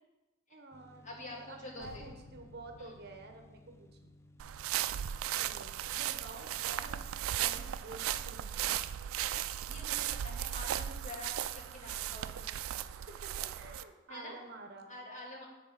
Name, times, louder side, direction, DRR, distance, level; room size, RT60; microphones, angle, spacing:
voice 1, 0.5-4.1 5.3-8.8 13.1-14.9, right 2 dB, 50° right, 4 dB, 0.9 m, -50 dB
sound 1, 0.7-13.2, left 1 dB, 15° left, 0.4 m, -62 dB
voice 2, 1.0-1.9 2.8-2.9 9.7-12.8 14.1-14.3 14.9-15.5, left 1 dB, 35° left, -2 dB, 1.8 m, -47 dB
sound 2, 1.8-6.6, left 3 dB, 85° left, 0.5 m, -57 dB
sound 3, 4.4-13.8, right 11 dB, 90° right, 0.3 m, -36 dB
8.3 x 4.2 x 5.8 m, 1.1 s
head